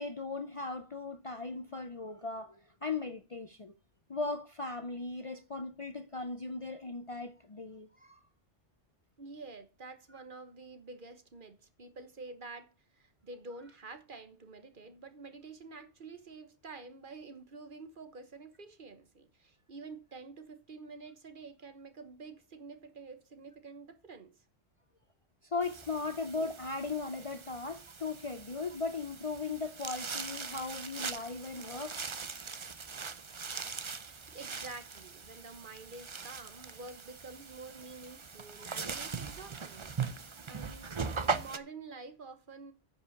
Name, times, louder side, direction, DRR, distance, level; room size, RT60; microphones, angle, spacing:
voice 1, 0.0-3.7 4.1-8.2 25.5-32.0, left 3 dB, 35° left, 0.6 m, -38 dB
voice 2, 9.2-24.3 26.2-26.3 34.0-40.9 41.2-42.7, right 3 dB, 50° right, 1.3 m, -49 dB
sound 1, 25.6-41.6, right 5 dB, 30° right, 0.6 m, -40 dB
9.7 x 5.6 x 6.4 m
omnidirectional pair, 1.2 m